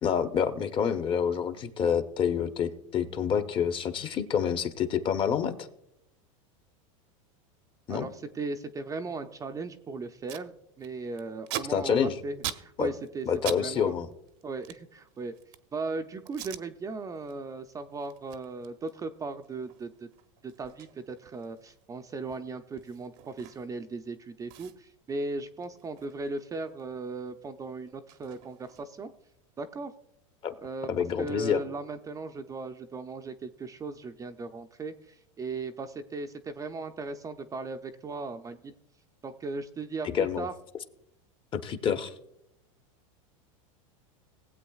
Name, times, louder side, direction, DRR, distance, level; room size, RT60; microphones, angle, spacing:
voice 1, 0.0-5.7 7.9-8.1 11.7-12.2 12.8-12.9 13.3-14.1 30.4-30.5 30.9-31.6 40.0-40.5 41.5-42.1, left 7 dB, 30° left, 8 dB, 0.9 m, -27 dB
voice 2, 7.9-13.3 13.6-13.9 14.4-15.3 15.7-20.1 20.4-29.1 29.6-29.9 30.6-30.9 31.2-38.7 39.2-40.5, right 3 dB, 20° right, 6 dB, 0.5 m, -37 dB
Packing tape duct tape, 10.3-10.5 10.8-13.6 13.9-15.7 16.3-16.6 17.1-17.3 17.7-23.9 24.1-24.2 24.5-26.9 27.1-29.1, right 12 dB, 55° right, 0.8 m, -43 dB
19.0 x 8.1 x 2.4 m, 0.81 s
supercardioid pair, 125°, 17 cm